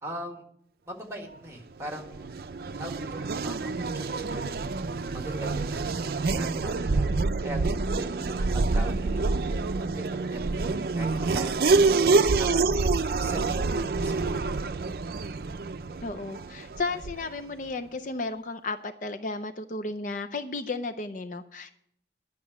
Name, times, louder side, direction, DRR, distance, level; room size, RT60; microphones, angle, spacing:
voice 1, 0.0-0.4 0.9-2.3 2.8-4.5 5.1-7.1 7.4-9.3 9.8-14.4, right 1 dB, 15° right, 3 dB, 1.7 m, -41 dB
Race car auto racing / Accelerating revving vroom, 1.8-17.4, right 3 dB, 60° right, 0.5 m, -27 dB
voice 2, 16.0-21.8, left 3 dB, 45° left, 8 dB, 0.5 m, -34 dB
10.5 x 6.1 x 8.2 m, 0.71 s
head